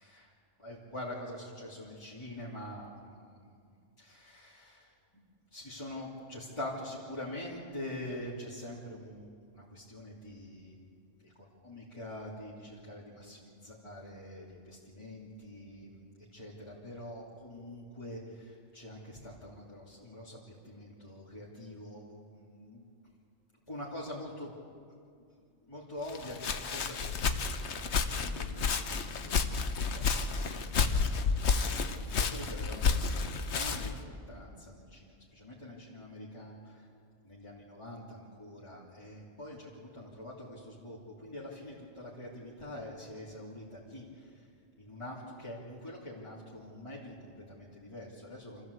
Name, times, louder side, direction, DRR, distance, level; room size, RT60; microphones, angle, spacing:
voice 1, 0.0-0.3 0.6-3.6 4.0-5.2 5.5-22.8 23.7-24.5 24.9-25.0 25.7-27.2 27.6-34.0 34.3-36.9 37.2-44.5 44.8-48.6, left 1 dB, 25° left, -8 dB, 2.9 m, -45 dB
Walk footsteps, 26.1-34.0, left 5 dB, 65° left, 1.3 m, -31 dB
26.5 x 14.5 x 8.2 m, 2.3 s
omnidirectional pair, 1.3 m